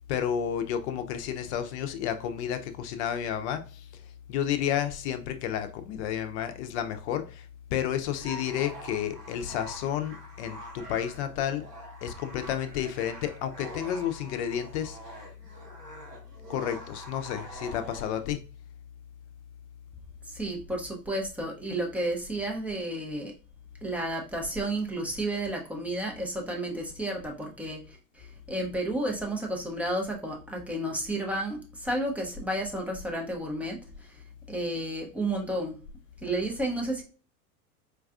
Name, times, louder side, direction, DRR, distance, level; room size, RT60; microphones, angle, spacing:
voice 1, 0.1-11.6 12.0-15.2 16.5-18.4, left 9 dB, 50° left, 0.6 m, -31 dB
sound 1, 8.1-18.2, right 1 dB, 90° right, 1.1 m, -45 dB
voice 2, 20.3-23.3 23.8-34.2 34.5-35.8 36.2-37.0, right 1 dB, 5° right, 0.4 m, -32 dB
4.5 x 2.3 x 2.3 m
figure-of-eight pair, 90°, 46 cm